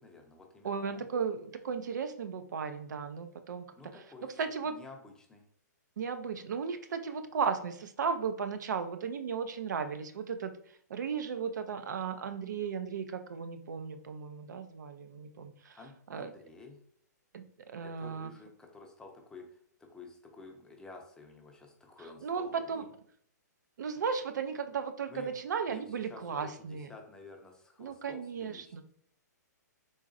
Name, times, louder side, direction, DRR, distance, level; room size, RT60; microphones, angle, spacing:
voice 1, 0.0-1.1 3.8-5.4 15.8-16.8 17.8-22.9 25.1-25.4 25.7-28.8, left 3 dB, 5° left, 2 dB, 0.5 m, -51 dB
voice 2, 0.6-3.6 4.4-4.7 6.0-10.5 10.9-15.8 16.1-16.3 17.3-18.3 22.2-22.8 23.8-26.9 27.8-28.8, right 6 dB, 75° right, 9 dB, 0.4 m, -35 dB
3.8 x 3.0 x 2.5 m, 0.63 s
hypercardioid pair, 145°, 10 cm